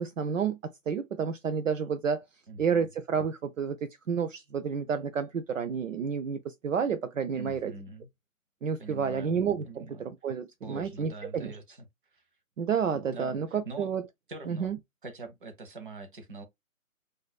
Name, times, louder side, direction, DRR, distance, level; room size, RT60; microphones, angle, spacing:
voice 1, 0.0-2.2 2.6-7.7 8.6-11.5 12.6-14.0 14.5-14.8, right 6 dB, 65° right, 0.5 m, -30 dB
voice 2, 2.5-2.9 7.3-8.1 8.8-9.4 9.6-10.1 10.6-11.8 12.1-12.2 12.9-13.9 14.3-14.7 15.0-16.4, right 3 dB, 35° right, 0.9 m, -43 dB
3.9 x 2.5 x 2.2 m
figure-of-eight pair, 150°, 42 cm